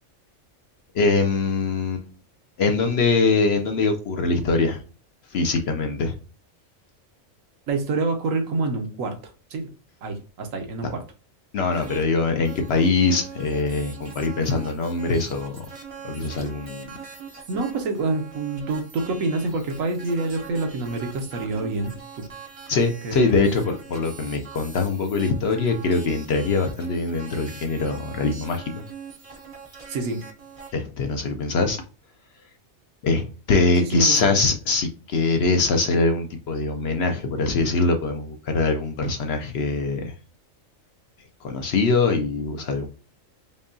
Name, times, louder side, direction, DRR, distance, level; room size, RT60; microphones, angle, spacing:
voice 1, 0.9-2.1 2.6-4.8 5.3-6.1 11.5-15.7 16.0-16.9 22.7-28.8 30.7-31.8 33.0-40.1 41.4-42.9, left 3 dB, 60° left, 5 dB, 0.7 m, -23 dB
voice 2, 7.7-9.2 9.5-9.7 10.0-11.0 17.5-22.2 23.0-23.5 29.9-30.2 33.8-34.3, right 3 dB, 80° right, 4 dB, 1.2 m, -27 dB
sound 1, 11.7-12.0 12.4-30.7, right 6 dB, 40° right, 0.5 m, -43 dB
5.3 x 2.3 x 2.5 m, 0.35 s
omnidirectional pair, 1.4 m